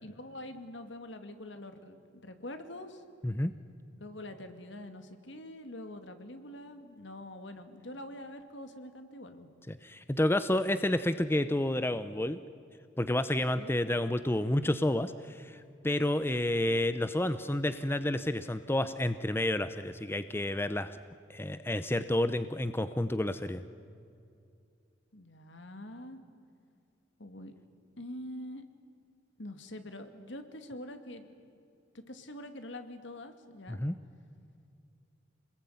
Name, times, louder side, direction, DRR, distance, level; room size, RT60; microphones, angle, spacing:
voice 1, 0.0-3.0 4.0-9.5 13.6-13.8 25.1-26.2 27.2-27.5 28.0-28.6 29.4-31.3 32.1-33.8, left 1 dB, 65° left, 8 dB, 2.4 m, -45 dB
voice 2, 9.7-12.4 13.0-21.0 21.3-23.6 33.7-34.0, left 1 dB, 10° left, 12 dB, 0.7 m, -30 dB
27.5 x 20.5 x 9.4 m, 2.4 s
head